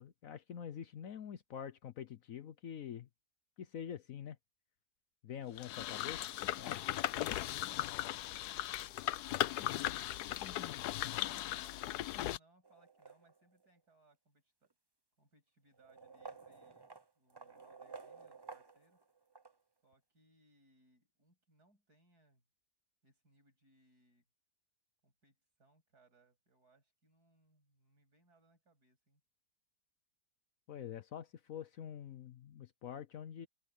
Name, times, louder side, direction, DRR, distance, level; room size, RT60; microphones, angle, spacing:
voice 1, 0.0-3.1 3.6-4.4 5.2-6.2 6.6-6.8 30.7-33.5, left 9 dB, 65° left, 1.1 m, -46 dB
sound 1, 5.6-12.4, left 13 dB, 85° left, 1.2 m, -37 dB
voice 2, 6.7-14.7 15.2-16.9 17.1-19.0 19.8-22.4 23.0-24.2 25.0-29.2, right 2 dB, 80° right, 8.5 m, -71 dB
sound 2, 12.6-13.7 14.6-14.7 15.7-19.5, right 4 dB, 20° right, 0.8 m, -53 dB
omnidirectional pair, 1.7 m